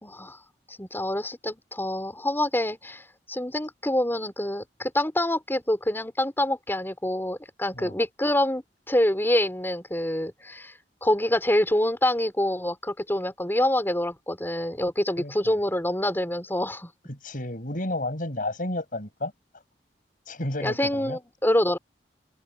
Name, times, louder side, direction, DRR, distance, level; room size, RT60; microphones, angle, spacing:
voice 1, 0.0-0.4 0.7-8.6 8.9-10.7 11.0-16.9 20.6-21.8, left 1 dB, 15° left, 3.7 m, -26 dB
voice 2, 15.2-15.5 17.1-19.3 20.3-21.2, left 1 dB, 50° left, 7.6 m, -32 dB
head